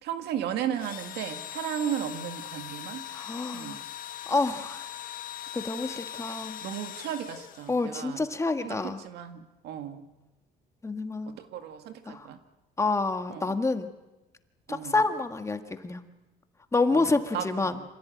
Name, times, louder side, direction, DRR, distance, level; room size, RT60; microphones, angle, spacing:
voice 1, 0.0-3.0 3.5-3.8 6.6-8.3 8.6-10.0 11.3-12.4 13.3-13.5 14.7-15.0 16.9-17.8, right 9 dB, 80° right, 7 dB, 2.1 m, -35 dB
Engine / Drill, 0.7-8.1, left 11 dB, 55° left, 1.4 m, -40 dB
voice 2, 3.1-3.8 4.3-4.9 5.5-6.6 7.7-9.0 10.8-11.4 12.1-12.3 12.8-13.9 14.7-16.0 16.7-17.8, left 3 dB, 15° left, 7 dB, 1.7 m, -28 dB
26.5 x 16.0 x 9.2 m, 1.0 s
cardioid pair, 110°, 17 cm